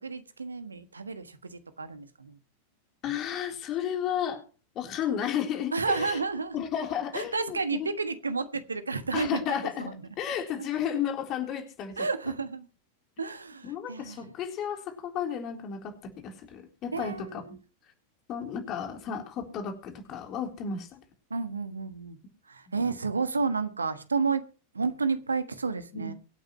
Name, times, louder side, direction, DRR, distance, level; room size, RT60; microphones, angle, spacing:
voice 1, 0.0-2.4 5.7-6.6 7.1-9.9 10.6-10.7 12.0-12.7 13.2-14.3 16.9-17.6 21.3-22.2 22.5-24.4 24.7-26.1, right 4 dB, 75° right, 11 dB, 1.4 m, -31 dB
voice 2, 3.0-4.4 4.8-6.2 6.5-7.9 9.1-9.9 10.2-12.1 13.6-17.4 18.3-21.0 25.9-26.1, left 8 dB, 35° left, 3 dB, 3.8 m, -33 dB
24.0 x 9.1 x 3.1 m, 0.36 s
figure-of-eight pair, 90°, 0 cm